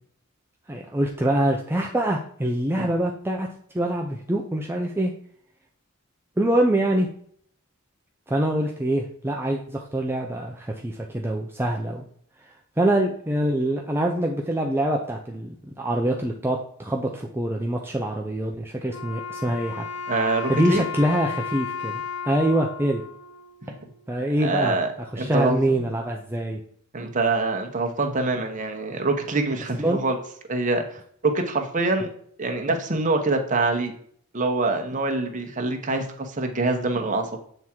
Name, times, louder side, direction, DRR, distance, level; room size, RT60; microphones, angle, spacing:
voice 1, 0.7-3.5 3.7-5.1 6.4-7.1 8.3-12.1 12.8-19.9 20.5-23.0 24.1-24.8 25.1-26.6 29.8-30.0, right 1 dB, 10° right, 0 dB, 0.6 m, -24 dB
Wind instrument woodwind instrument, 18.9-24.1, left 6 dB, 85° left, 0.7 m, -34 dB
voice 2, 20.1-20.8 24.4-25.6 26.9-30.2 30.5-32.1 32.4-33.9 34.3-37.4, right 3 dB, 40° right, 3 dB, 1.1 m, -25 dB
7.9 x 3.6 x 4.4 m, 0.62 s
head